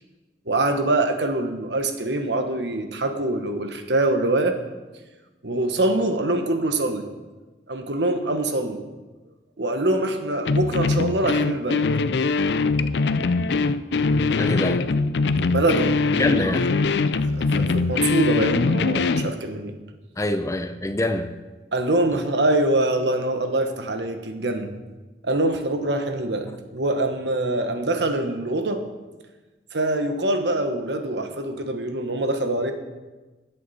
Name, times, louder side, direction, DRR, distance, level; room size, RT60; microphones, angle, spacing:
voice 1, 0.5-4.6 5.4-7.1 7.7-8.8 9.6-11.9 15.5-16.0 17.3-19.8 21.7-24.7 25.2-28.8 29.7-32.7, right 2 dB, 75° right, 6 dB, 1.2 m, -24 dB
sound 1, 10.4-19.3, left 4 dB, 75° left, 0.4 m, -22 dB
voice 2, 14.4-14.8 16.1-16.6 20.2-21.3, left 1 dB, 15° left, 9 dB, 0.6 m, -25 dB
16.0 x 8.4 x 4.2 m, 1.2 s
head